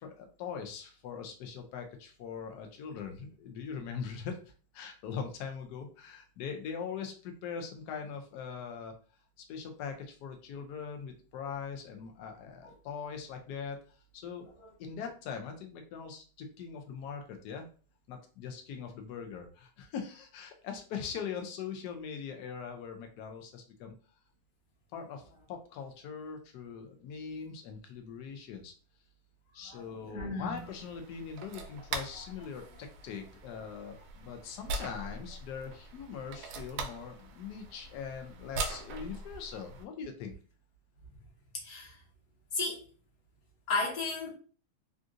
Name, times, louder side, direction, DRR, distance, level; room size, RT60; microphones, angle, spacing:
voice 1, 0.0-8.9 9.5-14.5 14.8-17.7 18.1-23.9 24.9-28.7 29.5-40.3, left 6 dB, 85° left, 4 dB, 0.8 m, -41 dB
voice 2, 29.7-30.6 41.5-42.0 42.5-42.8 43.7-44.3, left 3 dB, 50° left, -3 dB, 1.4 m, -34 dB
sound 1, 30.5-39.9, right 3 dB, 80° right, 1.4 m, -42 dB
3.7 x 2.5 x 2.5 m, 0.38 s
omnidirectional pair, 2.3 m